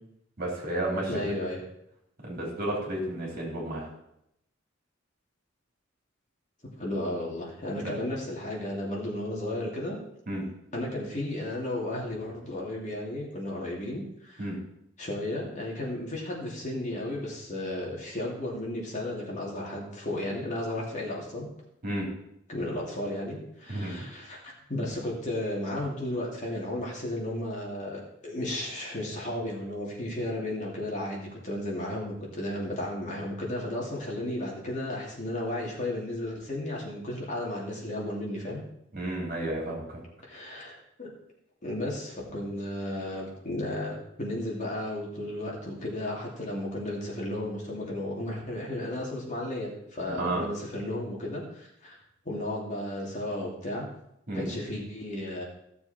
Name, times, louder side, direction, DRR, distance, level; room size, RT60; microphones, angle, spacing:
voice 1, 0.4-1.3 2.2-3.9 7.8-7.9 10.3-10.4 14.4-14.6 21.8-22.1 23.7-24.1 38.9-40.0 50.2-50.4 54.3-54.5, right 1 dB, 45° right, -2 dB, 3.7 m, -32 dB
voice 2, 1.1-1.6 6.8-10.0 10.7-14.5 15.0-21.5 22.5-38.6 40.2-41.1 41.6-52.0 52.2-53.8 54.3-55.4, left 1 dB, 40° left, -3 dB, 2.8 m, -34 dB
15.5 x 6.9 x 4.4 m, 0.79 s
head